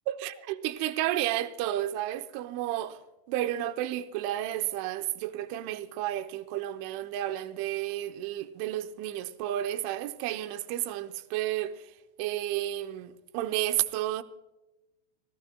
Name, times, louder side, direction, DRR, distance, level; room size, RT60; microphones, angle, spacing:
voice 1, 0.1-3.0 3.3-11.8 12.2-14.2, right 13 dB, 80° right, 3.0 m, -32 dB
27.0 x 17.5 x 2.2 m
omnidirectional pair, 5.8 m